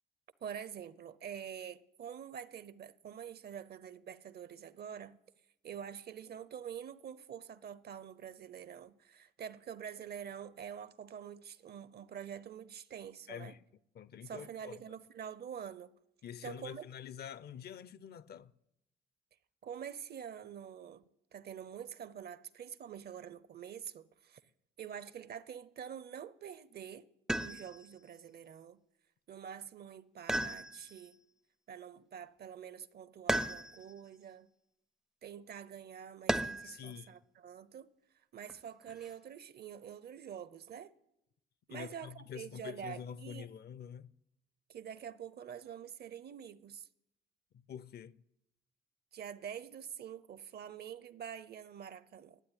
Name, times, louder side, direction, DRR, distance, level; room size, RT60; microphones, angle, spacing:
voice 1, 0.4-5.2 5.6-13.5 14.2-15.9 16.4-16.9 19.6-24.4 24.8-27.1 27.4-28.8 29.3-31.2 31.7-34.5 35.2-37.9 38.3-40.9 41.7-43.5 44.7-46.9 49.1-52.4, right 8 dB, 55° right, 0.7 m, -46 dB
voice 2, 13.3-13.6 13.9-14.8 16.2-18.5 36.6-37.1 41.7-44.1 47.7-48.2, left 8 dB, 55° left, 0.6 m, -46 dB
sound 1, 27.3-27.9 30.3-31.1 33.3-34.0 36.3-36.8 38.5-39.1, right 1 dB, 5° right, 0.5 m, -35 dB
12.0 x 8.0 x 9.9 m
cardioid pair, 90°, 20 cm